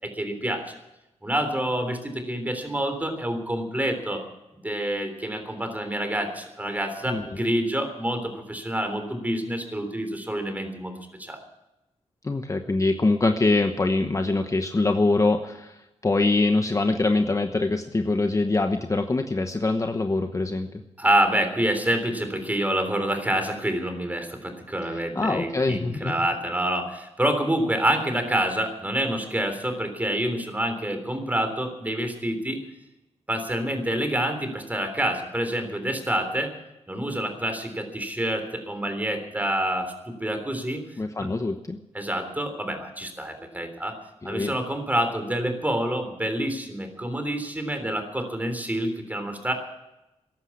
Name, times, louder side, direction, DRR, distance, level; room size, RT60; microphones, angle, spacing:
voice 1, 0.0-0.8 1.2-4.2 4.6-10.9 11.2-11.4 21.0-32.6 33.3-36.5 36.9-40.8 41.2-41.3 41.9-44.0 44.2-49.5, right 1 dB, 15° right, 6 dB, 3.5 m, -27 dB
voice 2, 12.2-20.8 24.9-26.1 41.0-41.8 44.2-44.5, left 2 dB, 25° left, 6 dB, 1.0 m, -24 dB
14.5 x 11.5 x 8.5 m, 0.93 s
cardioid pair, 80°, 12 cm